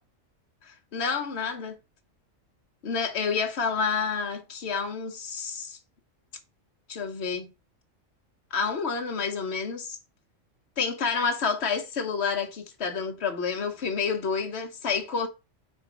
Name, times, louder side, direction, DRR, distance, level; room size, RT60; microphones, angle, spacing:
voice 1, 0.6-1.8 2.8-5.8 6.9-7.5 8.5-10.0 10.8-15.3, left 5 dB, 55° left, 1.4 m, -29 dB
4.5 x 4.5 x 4.9 m
omnidirectional pair, 1.3 m